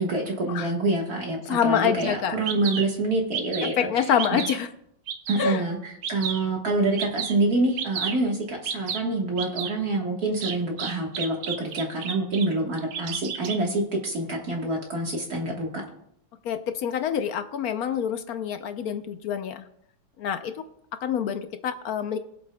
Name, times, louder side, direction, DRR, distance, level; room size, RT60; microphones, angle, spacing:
voice 1, 0.0-4.4 5.3-15.8, right 2 dB, 50° right, 0 dB, 1.8 m, -27 dB
voice 2, 1.5-2.3 3.6-4.7 5.4-5.6 16.4-19.6 20.2-20.5 21.0-22.2, left 8 dB, 65° left, 9 dB, 1.0 m, -26 dB
Bird vocalization bird call bird song, 2.0-2.1 2.5-2.9 3.3-3.8 4.2-4.6 5.1-5.5 6.0-6.5 7.0-7.3 7.8-8.2 8.6-9.0 9.4-9.7 10.4-12.5 12.8-13.6, right 7 dB, 75° right, 1.5 m, -31 dB
21.0 x 8.1 x 2.2 m, 0.73 s
omnidirectional pair, 2.1 m